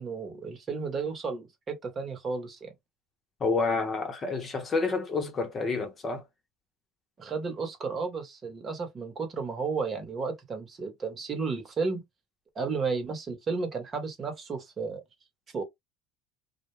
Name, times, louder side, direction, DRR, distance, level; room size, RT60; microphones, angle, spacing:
voice 1, 0.0-2.7 7.2-12.0 12.5-15.0 15.5-15.6, right 4 dB, 35° right, 1.0 m, -33 dB
voice 2, 3.4-6.2, left 3 dB, 35° left, 0.8 m, -29 dB
2.3 x 2.1 x 3.1 m
supercardioid pair, 100°, 0 cm